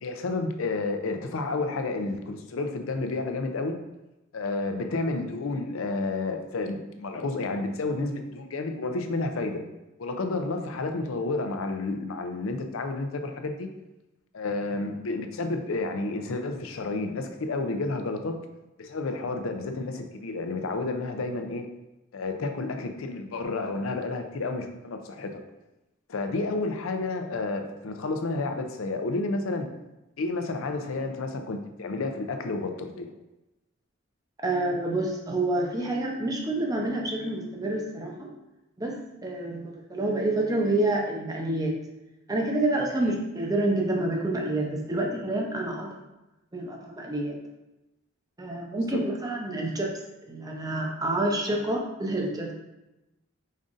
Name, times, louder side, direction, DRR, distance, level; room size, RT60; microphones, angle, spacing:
voice 1, 0.0-3.8 4.3-9.6 10.0-13.7 14.3-18.4 18.8-21.7 22.1-25.4 26.1-29.7 30.2-33.1 39.5-39.6 43.0-43.1 48.8-49.0, left 3 dB, 80° left, 6 dB, 0.5 m, -31 dB
voice 2, 34.4-38.3 38.8-41.8 42.3-46.0 46.5-47.4 48.4-50.0 50.3-52.5, right 2 dB, 20° right, 0 dB, 0.6 m, -28 dB
5.3 x 3.7 x 2.5 m, 0.98 s
head